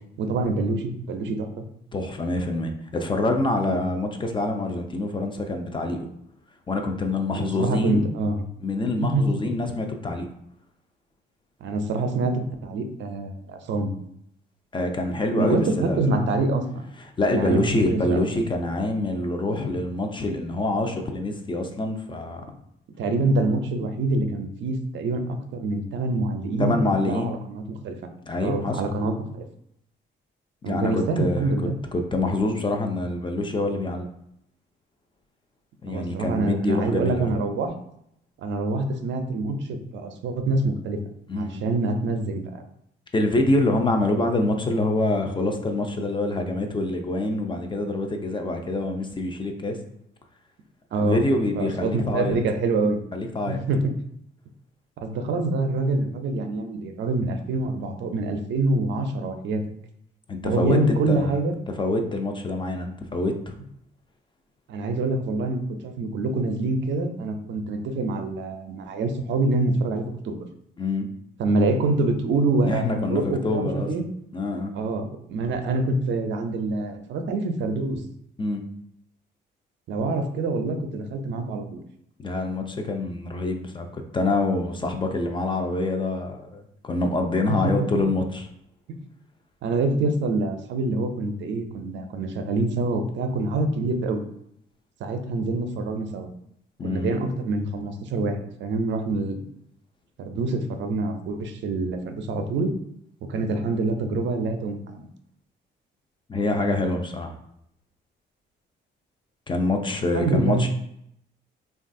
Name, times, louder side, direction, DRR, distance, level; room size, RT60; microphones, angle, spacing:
voice 1, 0.2-1.6 3.6-3.8 7.3-8.5 9.0-9.2 11.6-13.9 15.4-16.8 17.3-18.2 23.0-25.2 25.5-28.0 28.4-29.4 30.6-31.8 35.9-37.7 38.4-41.0 41.3-42.7 50.9-51.2 51.5-53.0 53.5-53.9 55.0-59.6 60.4-61.6 64.7-70.4 71.4-74.0 74.7-78.0 79.9-81.8 87.5-87.7 89.6-94.2 95.0-96.3 96.8-99.4 100.2-102.7 103.3-105.1 110.1-110.7, right 2 dB, 65° right, 6 dB, 0.5 m, -26 dB
voice 2, 1.9-6.1 6.7-8.1 8.6-10.3 14.7-16.1 17.2-22.4 26.6-27.3 28.3-28.8 30.7-31.5 31.9-34.1 35.8-37.3 41.3-41.6 43.1-49.8 51.0-52.4 53.1-53.6 60.3-61.4 61.8-63.5 70.8-71.1 72.6-73.9 74.3-74.7 78.4-78.6 82.2-88.5 96.8-97.1 106.3-107.3 109.5-110.7, left 2 dB, 25° left, 4 dB, 0.4 m, -26 dB
3.1 x 2.3 x 2.5 m, 0.74 s
cardioid pair, 90°, 20 cm